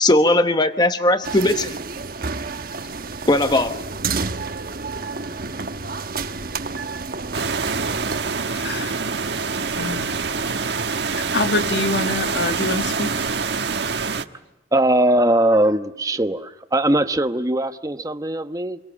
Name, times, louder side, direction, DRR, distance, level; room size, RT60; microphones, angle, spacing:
voice 1, 0.0-1.7 3.3-3.8, left 1 dB, 25° left, 9 dB, 0.9 m, -18 dB
sound 1, 1.2-8.2, right 4 dB, 55° right, 1.1 m, -30 dB
sound 2, 7.3-14.2, right 4 dB, 70° right, 1.4 m, -25 dB
voice 2, 8.5-9.1 9.7-10.1 11.1-13.1, left 2 dB, 70° left, 8 dB, 1.5 m, -26 dB
voice 3, 14.7-18.8, right 1 dB, 20° right, 9 dB, 1.0 m, -20 dB
28.0 x 23.0 x 8.4 m, 0.99 s
head